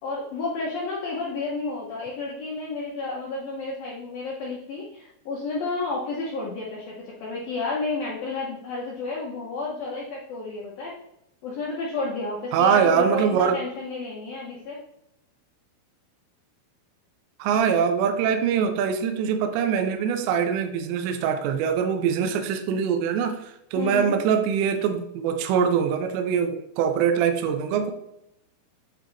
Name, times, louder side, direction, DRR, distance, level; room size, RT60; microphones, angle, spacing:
voice 1, 0.0-11.0 11.4-14.8 23.8-24.1, left 3 dB, 80° left, -4 dB, 2.0 m, -31 dB
voice 2, 12.5-13.6 17.4-27.9, right 7 dB, 80° right, 6 dB, 2.6 m, -23 dB
9.2 x 4.2 x 3.2 m, 0.81 s
omnidirectional pair, 5.8 m